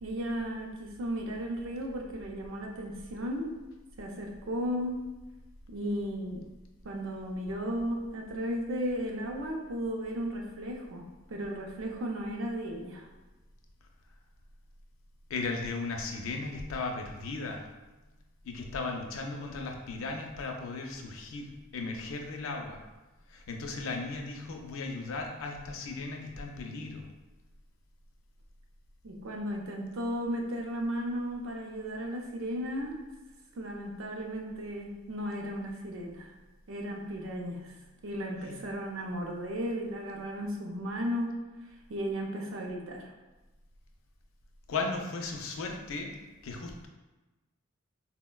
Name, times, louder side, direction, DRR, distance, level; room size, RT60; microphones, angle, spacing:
voice 1, 0.0-3.5 4.0-5.0 5.7-6.4 6.8-13.1 29.0-33.0 33.6-36.3 36.7-37.8 38.0-41.4 41.9-43.1, equal, 65° right, 1 dB, 0.5 m, -35 dB
voice 2, 15.3-17.7 18.4-22.8 23.3-27.1 38.4-38.5 44.7-46.2 46.4-46.9, left 3 dB, 70° left, 3 dB, 0.4 m, -36 dB
4.1 x 2.1 x 2.2 m, 1.1 s
head